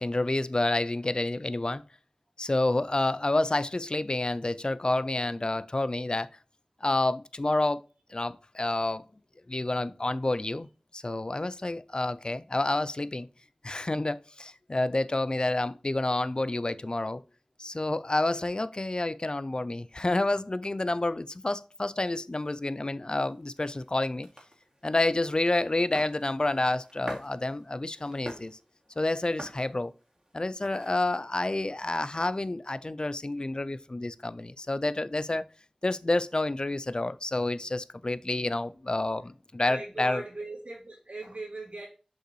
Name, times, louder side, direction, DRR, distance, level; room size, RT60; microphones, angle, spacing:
voice 1, 0.0-1.8 2.4-6.3 6.8-7.8 8.1-9.1 9.5-10.7 10.9-13.3 13.6-17.2 17.6-24.3 24.8-28.5 29.0-29.9 30.3-35.4 35.8-40.2, left 2 dB, 40° left, 0.4 m, -29 dB
sound 1, 23.1-31.2, right 1 dB, 35° right, 2.3 m, -48 dB
voice 2, 39.6-41.9, right 2 dB, 75° right, 2.1 m, -39 dB
6.4 x 5.4 x 3.1 m
wide cardioid pair, 40°, 2 cm